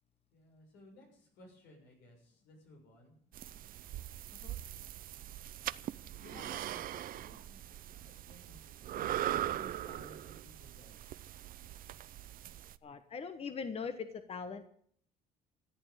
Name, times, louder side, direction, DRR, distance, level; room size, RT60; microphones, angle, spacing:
voice 1, 0.3-3.1 5.5-11.3, left 1 dB, 90° left, 1 dB, 6.9 m, -58 dB
sound 1, 3.3-12.8, right 12 dB, 60° right, 0.6 m, -41 dB
voice 2, 12.8-14.7, left 5 dB, 35° left, 10 dB, 1.2 m, -41 dB
14.5 x 9.0 x 9.8 m, 0.62 s
cardioid pair, 110°, 17 cm